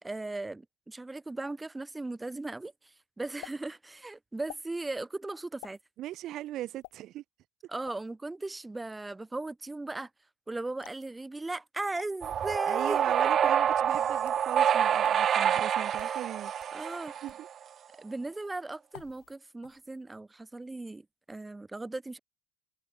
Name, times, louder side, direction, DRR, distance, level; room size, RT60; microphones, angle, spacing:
voice 1, 0.0-5.8 7.7-10.1 10.5-13.3 15.9-16.2 16.7-17.1 18.0-22.2, right 2 dB, 10° right, 2.8 m, -37 dB
sound 1, 3.4-3.6 4.5-4.7 5.6-5.8 6.8-7.0 7.8-8.1 10.8-11.1 11.9-12.1 13.0-13.1 14.0-14.4 15.0-15.1 15.8-16.2 16.6-16.7 17.3-17.5 18.9-19.4 19.6-20.0, left 29 dB, 85° left, 3.6 m, -49 dB
voice 2, 6.0-7.2 12.7-16.5 17.2-17.5, right 14 dB, 55° right, 2.2 m, -39 dB
sound 2, 12.2-17.5, right 9 dB, 40° right, 1.3 m, -27 dB
supercardioid pair, 115°, 0 cm